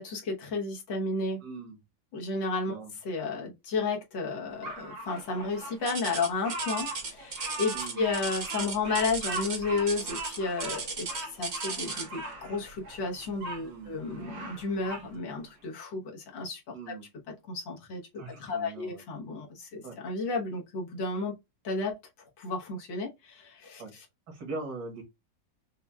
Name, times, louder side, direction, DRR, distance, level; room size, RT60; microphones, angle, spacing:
voice 1, 0.0-1.4 2.1-2.8 3.0-16.6 17.5-21.3 21.6-21.9 22.4-23.8, left 3 dB, 80° left, 1.9 m, -32 dB
voice 2, 1.4-1.8 2.7-2.9 7.7-8.1 13.6-14.0 16.7-17.1 18.2-19.0 19.8-20.0 23.8-23.9 24.3-25.0, right 3 dB, 65° right, 2.0 m, -41 dB
Bird vocalization bird call bird song, 4.6-13.6 14.1-15.1, right 2 dB, 85° right, 1.8 m, -40 dB
sound 1, 5.9-12.2 13.2-13.5 14.0-14.1 14.8-14.9, right 4 dB, 45° right, 0.7 m, -36 dB
5.8 x 2.3 x 2.3 m
omnidirectional pair, 2.0 m